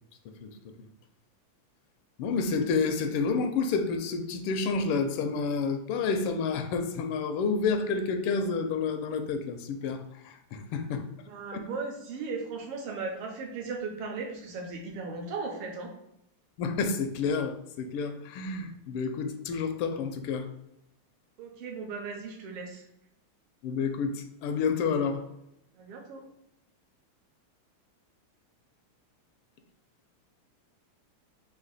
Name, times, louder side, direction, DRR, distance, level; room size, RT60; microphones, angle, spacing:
voice 1, 2.2-11.3 16.6-20.5 23.6-25.3, left 5 dB, 85° left, 7 dB, 1.5 m, -29 dB
voice 2, 11.2-15.9 21.4-22.8 25.7-26.2, right 4 dB, 80° right, 1 dB, 1.7 m, -37 dB
4.2 x 2.7 x 3.9 m, 0.82 s
omnidirectional pair, 2.4 m